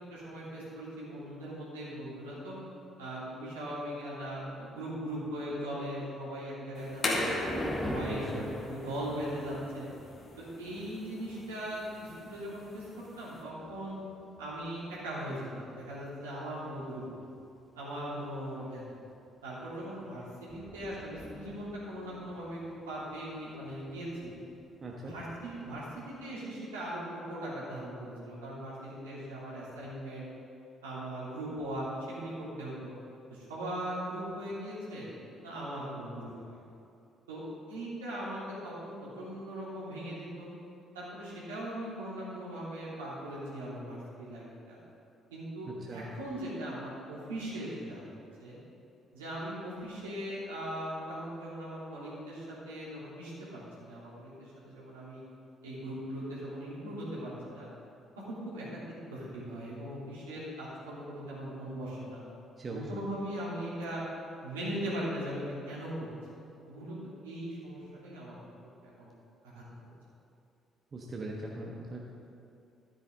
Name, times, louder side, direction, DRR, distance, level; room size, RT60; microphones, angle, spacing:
voice 1, 0.1-2.5 3.0-7.4 7.8-9.9 10.4-14.0 14.4-17.3 17.7-19.0 19.4-24.3 25.0-30.3 30.8-32.9 33.3-35.0 35.4-36.6 37.3-37.4 37.7-40.5 40.9-44.8 45.3-48.1 48.4-48.6 49.1-53.3 53.8-55.2 55.6-57.7 58.2-58.6 59.1-62.2 62.7-64.0 64.4-65.9 66.7-67.0 67.2-68.4 69.0-69.1 69.5-69.6, right 1 dB, 80° right, -8 dB, 3.0 m, -39 dB
sound 1, 6.8-13.4, left 2 dB, 45° left, 2.0 m, -38 dB
Thunder, 6.8-15.3 15.8-16.0 16.7-16.8 17.2-17.3 19.5-19.7 20.0-20.1 20.3-26.3, left 1 dB, 10° left, 1.1 m, -45 dB
voice 2, 8.0-8.5 24.8-25.1 45.7-46.1 62.6-62.9 70.9-72.0, right 2 dB, 40° right, -2 dB, 1.3 m, -40 dB
13.0 x 9.0 x 3.8 m, 2.5 s
figure-of-eight pair, 45°, 0 cm